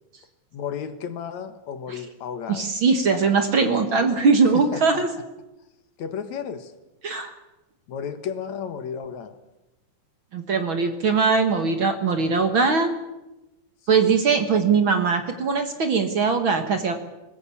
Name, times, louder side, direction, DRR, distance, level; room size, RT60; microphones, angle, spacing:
voice 1, 0.5-2.7 4.5-5.0 6.0-6.7 7.9-9.4 13.9-14.0, left 7 dB, 65° left, 10 dB, 2.5 m, -33 dB
voice 2, 2.5-5.1 7.0-7.3 10.3-12.9 13.9-16.9, right 5 dB, 50° right, 7 dB, 1.9 m, -21 dB
21.5 x 20.0 x 8.5 m, 0.99 s
omnidirectional pair, 3.5 m